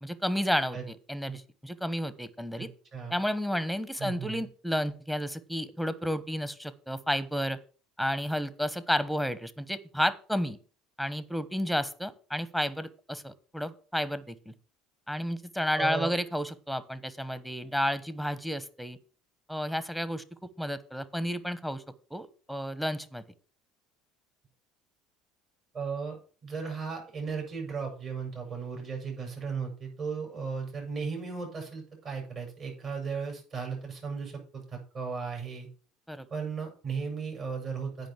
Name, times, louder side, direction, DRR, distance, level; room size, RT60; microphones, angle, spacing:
voice 1, 0.0-2.7 3.1-7.6 8.0-10.6 11.0-14.5 15.1-19.0 19.5-21.8 22.1-23.2 36.1-36.3, equal, ahead, 15 dB, 1.1 m, -31 dB
voice 2, 2.6-3.1 4.0-4.4 15.8-16.1 25.7-35.7 36.3-38.1, right 5 dB, 45° right, 1 dB, 6.1 m, -36 dB
9.0 x 5.2 x 7.1 m, 0.40 s
hypercardioid pair, 75°, 0 cm